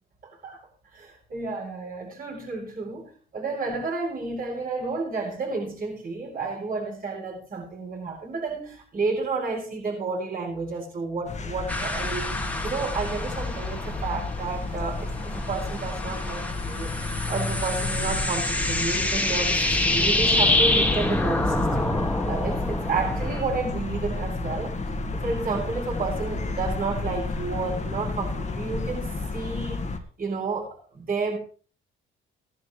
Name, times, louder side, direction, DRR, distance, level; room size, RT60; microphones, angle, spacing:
voice 1, 0.2-0.6 0.9-16.9 17.3-24.7 25.1-29.8 30.2-31.4, right 4 dB, 45° right, -4 dB, 6.7 m, -31 dB
sound 1, 11.3-30.0, left 3 dB, 35° left, 1.8 m, -32 dB
sound 2, 11.7-14.6 14.9-23.4, left 1 dB, 5° left, 2.0 m, -26 dB
17.0 x 11.0 x 3.3 m, 0.42 s
cardioid pair, 90°, 20 cm